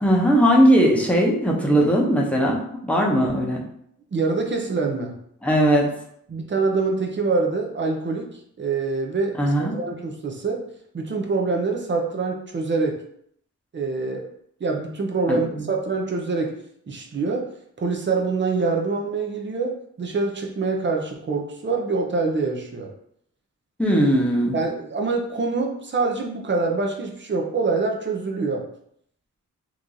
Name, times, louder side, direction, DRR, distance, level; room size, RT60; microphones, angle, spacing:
voice 1, 0.0-3.6 5.4-5.9 9.4-9.7 15.3-15.6 23.8-24.5, equal, 5° left, -3 dB, 0.7 m, -19 dB
voice 2, 4.1-5.2 6.3-10.7 10.9-13.0 13.7-14.3 14.6-16.6 16.9-22.9 24.5-28.7, right 3 dB, 40° right, 1 dB, 0.6 m, -25 dB
3.0 x 2.5 x 3.8 m, 0.69 s
wide cardioid pair, 115°, 30 cm